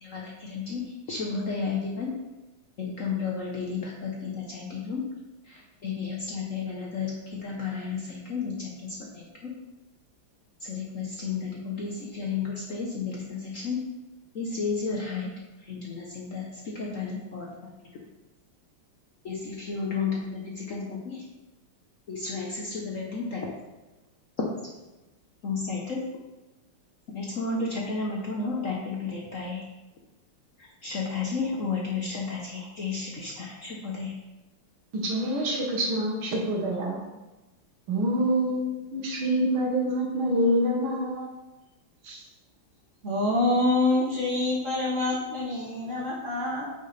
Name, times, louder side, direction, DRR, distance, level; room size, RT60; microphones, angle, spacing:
voice 1, 0.0-2.1 2.8-5.0 5.5-9.5 10.6-13.8 14.3-15.3 15.6-17.5 19.2-21.2 22.1-23.5 25.4-26.0 27.1-29.6 30.8-34.1, left 4 dB, 50° left, -2 dB, 1.1 m, -32 dB
voice 2, 35.0-37.0 37.9-41.3 42.0-42.2, equal, 80° right, -1 dB, 2.3 m, -26 dB
voice 3, 43.0-46.7, left 2 dB, 40° right, -8 dB, 2.9 m, -26 dB
9.0 x 5.7 x 3.3 m, 1.1 s
omnidirectional pair, 2.2 m